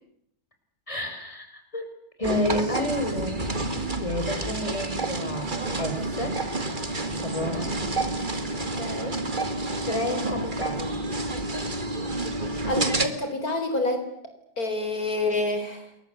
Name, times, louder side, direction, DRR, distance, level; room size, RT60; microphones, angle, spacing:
voice 1, 0.9-1.9 2.2-3.4 3.7-6.4 7.0-7.7 9.8-10.9, left 1 dB, 20° left, 6 dB, 5.1 m, -30 dB
sound 1, 2.2-13.1, right 2 dB, 30° right, 2.4 m, -29 dB
voice 2, 8.8-9.2 12.6-14.1 14.6-15.9, left 2 dB, 60° left, 6 dB, 4.3 m, -28 dB
29.0 x 22.5 x 8.2 m, 0.76 s
omnidirectional pair, 1.7 m